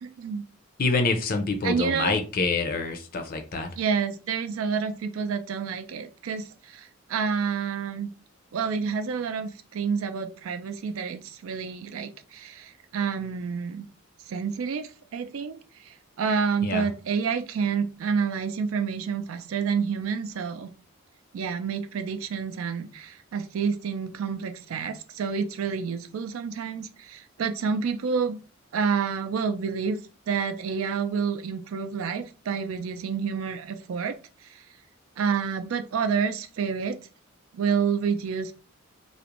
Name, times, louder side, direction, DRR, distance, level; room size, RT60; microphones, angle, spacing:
voice 1, 0.0-0.4 1.6-2.2 3.8-8.1 8.5-13.9 14.3-20.7 21.3-28.4 28.7-30.0 30.3-34.2 34.4-34.6 35.2-37.0 37.5-38.5, right 6 dB, 80° right, 8 dB, 0.4 m, -29 dB
voice 2, 0.8-3.7 16.6-16.8, left 3 dB, 45° left, 6 dB, 0.5 m, -26 dB
2.4 x 2.0 x 2.9 m, 0.35 s
head